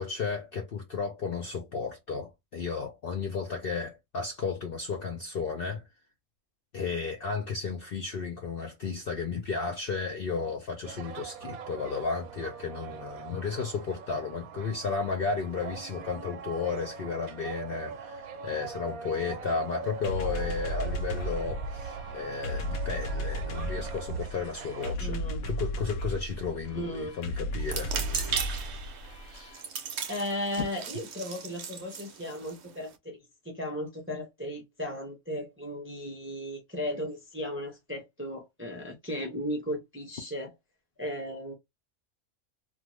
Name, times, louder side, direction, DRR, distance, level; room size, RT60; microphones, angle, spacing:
voice 1, 0.0-5.9 6.7-25.2 25.5-27.9 29.2-29.6, left 5 dB, 60° left, 0.6 m, -33 dB
sound 1, 10.8-24.9, right 6 dB, 85° right, 1.0 m, -41 dB
sound 2, 20.0-29.6, equal, 85° left, 1.1 m, -35 dB
voice 2, 25.0-25.5 26.7-27.2 30.1-40.5 41.0-41.5, equal, 15° right, 0.4 m, -36 dB
sound 3, 27.6-33.0, right 7 dB, 60° right, 0.7 m, -37 dB
2.6 x 2.3 x 2.9 m
omnidirectional pair, 1.5 m